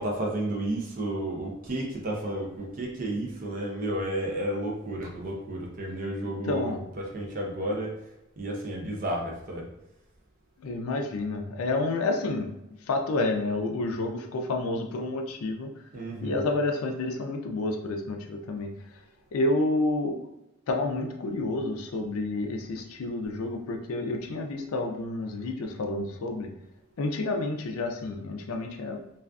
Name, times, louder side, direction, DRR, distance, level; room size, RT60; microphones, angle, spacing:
voice 1, 0.0-8.0 8.4-9.7 15.9-16.4, right 1 dB, 40° right, -1 dB, 0.5 m, -32 dB
voice 2, 6.4-6.8 10.6-12.5 12.9-15.7 16.2-18.7 19.3-20.2 20.7-26.5 27.0-29.0, left 2 dB, 85° left, 3 dB, 0.4 m, -29 dB
2.4 x 2.4 x 2.3 m, 0.90 s
head